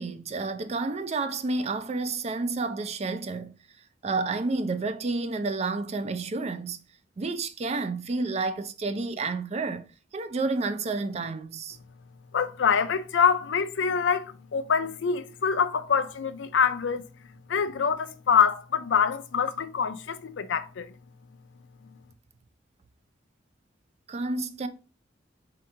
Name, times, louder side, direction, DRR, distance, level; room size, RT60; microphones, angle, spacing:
voice 1, 0.0-3.5 4.0-6.8 7.2-9.9 10.1-11.8 24.1-24.7, right 3 dB, 35° right, 0.4 m, -30 dB
voice 2, 12.3-17.0 17.5-20.9, left 6 dB, 80° left, 0.4 m, -25 dB
4.4 x 2.8 x 3.7 m
head